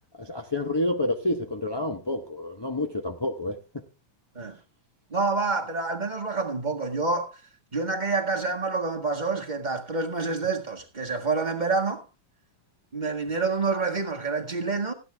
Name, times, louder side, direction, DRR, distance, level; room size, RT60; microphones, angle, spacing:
voice 1, 0.2-3.8, left 1 dB, 35° left, 0.4 m, -29 dB
voice 2, 5.1-7.4 7.7-12.0 12.9-14.9, right 4 dB, 25° right, 1.7 m, -27 dB
14.5 x 9.9 x 3.4 m
omnidirectional pair, 2.1 m